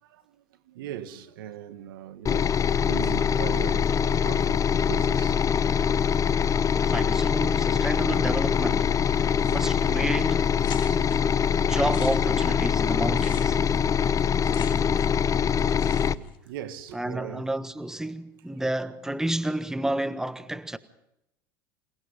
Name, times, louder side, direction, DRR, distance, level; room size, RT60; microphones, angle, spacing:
voice 1, 0.0-2.6 2.9-5.5 6.2-6.3 9.9-10.1 11.1-11.7 13.7-13.9 14.7-14.8 15.1-17.5, right 11 dB, 80° right, 1.6 m, -41 dB
sound 1, 2.3-16.2, left 7 dB, 30° left, 0.8 m, -23 dB
voice 2, 6.8-10.5 11.6-13.6 16.9-20.8, right 1 dB, 5° right, 1.3 m, -30 dB
sound 2, 9.4-9.9 10.2-10.3 10.6-11.2 11.7-15.3 15.5-16.4, left 8 dB, 45° left, 4.1 m, -45 dB
28.0 x 18.5 x 5.2 m
hypercardioid pair, 85°, 11 cm